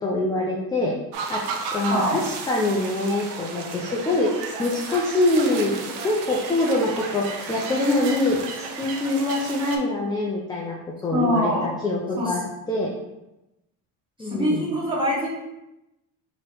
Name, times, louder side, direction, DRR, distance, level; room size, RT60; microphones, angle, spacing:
voice 1, 0.0-0.9 1.3-1.4 1.7-12.4 12.7-12.9 14.2-14.7, left 2 dB, 10° left, -3 dB, 0.4 m, -24 dB
sound 1, 1.1-9.8, right 4 dB, 70° right, 0.8 m, -33 dB
voice 2, 1.9-2.2 11.1-11.7 12.2-12.3 14.2-15.3, equal, 10° right, -6 dB, 1.5 m, -24 dB
3.1 x 2.9 x 4.4 m, 0.94 s
cardioid pair, 120°, 42 cm